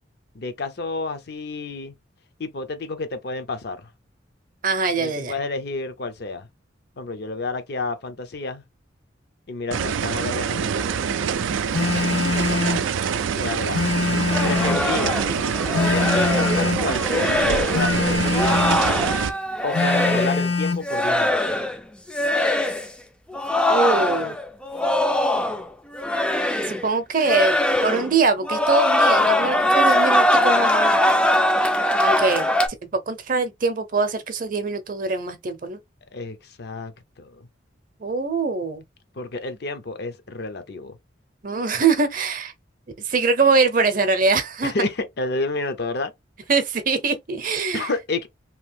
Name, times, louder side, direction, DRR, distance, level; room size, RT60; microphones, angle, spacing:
voice 1, 0.3-1.9 2.4-3.9 5.0-6.5 7.0-8.6 9.5-11.0 13.4-13.9 14.4-15.2 15.7-18.7 19.6-21.7 36.1-36.9 37.2-37.5 39.2-41.0 44.6-46.1 47.7-48.3, left 3 dB, 55° left, 0.6 m, -30 dB
voice 2, 4.6-5.3 12.0-12.8 23.7-24.4 26.7-27.6 27.8-31.0 32.0-32.5 32.8-35.8 38.0-38.8 41.4-42.5 43.0-44.7 46.5-47.9, right 4 dB, 45° right, 0.6 m, -23 dB
sound 1, 9.7-19.3, right 7 dB, 85° right, 0.3 m, -25 dB
Telephone, 11.7-12.9 13.7-14.9 15.7-16.9 17.7-18.9 19.7-20.9, left 4 dB, 70° left, 0.9 m, -24 dB
sound 2, 14.3-20.5 20.8-21.8 22.1-22.9 23.3-25.7 25.9-26.9 27.2-28.2 28.4-32.7, left 1 dB, 5° left, 0.3 m, -22 dB
2.9 x 2.6 x 3.3 m
head